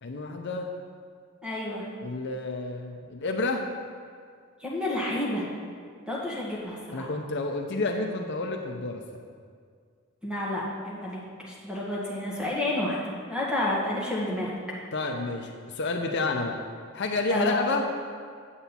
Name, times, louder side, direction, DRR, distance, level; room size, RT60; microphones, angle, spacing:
voice 1, 0.0-0.7 2.0-3.6 6.9-9.0 14.9-16.6 16.9-17.8, left 3 dB, 55° left, 3 dB, 0.6 m, -30 dB
voice 2, 1.4-1.8 4.6-5.5 6.1-7.1 10.2-13.0 13.3-14.5 17.3-17.5, left 1 dB, 5° right, -6 dB, 1.8 m, -30 dB
8.6 x 8.0 x 4.3 m, 2.1 s
head